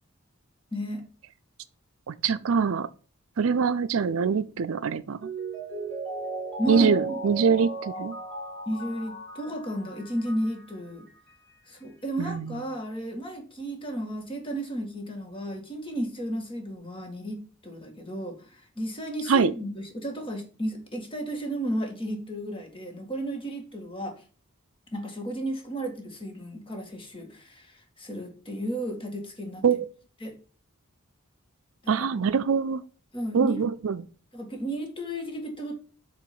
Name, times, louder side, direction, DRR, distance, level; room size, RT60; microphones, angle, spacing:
voice 1, 0.7-1.0 6.6-7.2 8.6-11.1 11.7-24.2 24.9-29.7 30.2-30.3 31.8-32.3 33.1-33.6 34.3-35.7, right 1 dB, 25° left, 1.8 m, -33 dB
voice 2, 2.1-2.9 3.4-5.3 6.7-8.2 12.2-12.6 19.3-19.5 29.6-29.9 31.9-32.8 33.3-34.0, right 6 dB, 70° right, 0.4 m, -24 dB
Mallet percussion, 5.2-10.7 11.1-11.2, right 2 dB, 5° left, 2.2 m, -36 dB
8.0 x 3.1 x 5.8 m
head